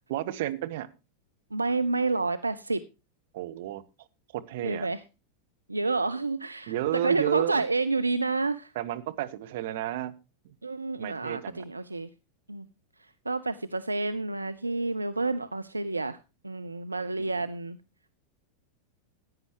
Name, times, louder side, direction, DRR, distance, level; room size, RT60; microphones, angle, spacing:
voice 1, 0.1-0.9 3.3-3.8 4.3-4.9 6.7-7.6 8.7-10.2 10.4-10.5 11.0-11.6 17.2-17.3, right 14 dB, 50° right, 9 dB, 1.1 m, -31 dB
voice 2, 1.5-2.8 4.6-5.0 5.7-8.7 10.6-12.1 12.5-12.7 13.0-16.2 16.4-17.8, right 3 dB, 80° right, 11 dB, 0.5 m, -29 dB
15.5 x 9.5 x 3.0 m, 0.29 s
figure-of-eight pair, 90°, 0 cm